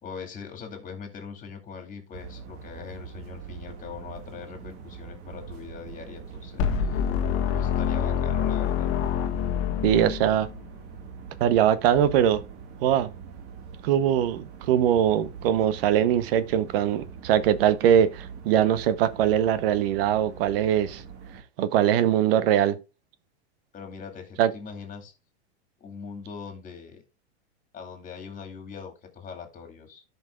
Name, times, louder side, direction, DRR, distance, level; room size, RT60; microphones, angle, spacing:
voice 1, 0.0-7.0 7.5-8.9 23.7-25.1 25.8-27.0 27.7-30.0, left 6 dB, 25° left, 2.4 m, -41 dB
sound 1, 2.1-21.4, right 6 dB, 40° right, 1.6 m, -43 dB
sound 2, 6.6-10.6, left 8 dB, 40° left, 1.3 m, -26 dB
voice 2, 9.8-10.5 11.4-12.4 12.8-13.1 13.8-21.0 21.6-22.8 24.4-24.5, right 10 dB, 55° right, 0.9 m, -22 dB
13.5 x 5.4 x 2.3 m
hypercardioid pair, 125°, 34 cm